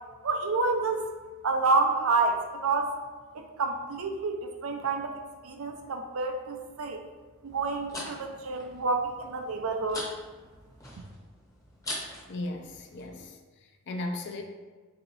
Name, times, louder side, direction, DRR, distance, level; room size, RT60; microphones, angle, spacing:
voice 1, 0.2-1.1 1.4-2.9 3.3-5.1 5.4-7.0 7.4-10.1, right 3 dB, 70° right, 4 dB, 0.5 m, -28 dB
sound 1, 7.5-13.3, left 1 dB, 15° left, 0.7 m, -43 dB
voice 2, 12.3-13.3 13.9-14.4, left 2 dB, 55° left, 5 dB, 0.4 m, -35 dB
3.0 x 2.8 x 4.0 m, 1.4 s
head